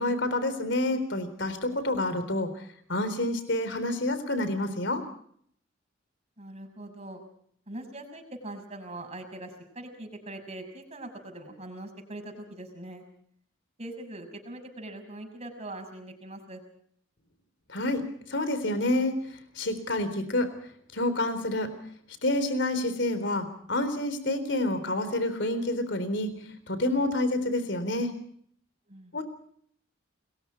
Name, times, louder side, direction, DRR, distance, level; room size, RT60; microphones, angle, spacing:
voice 1, 0.0-2.5 2.9-5.0 17.7-18.0 18.3-19.2 19.6-20.5 20.9-21.7 22.2-26.3 26.7-28.1 29.1-29.2, left 1 dB, 60° left, 11 dB, 3.9 m, -28 dB
voice 2, 6.4-7.2 7.7-13.1 13.8-16.6 28.9-29.2, right 1 dB, 35° right, 4 dB, 6.3 m, -42 dB
29.5 x 22.0 x 4.5 m, 0.63 s
head